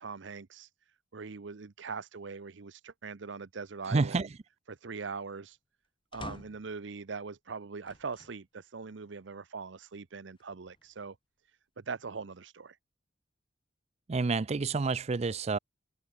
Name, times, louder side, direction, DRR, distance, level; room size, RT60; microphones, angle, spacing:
voice 1, 0.0-4.3 4.7-5.6 6.1-11.2 11.4-12.8, right 5 dB, 65° right, 0.7 m, -42 dB
voice 2, 3.9-4.3 14.1-15.6, right 4 dB, 35° right, 0.4 m, -29 dB
sound 1, 6.1-6.8 7.8-8.4 9.0-9.1 10.4-11.1, left 2 dB, 25° left, 0.9 m, -48 dB
head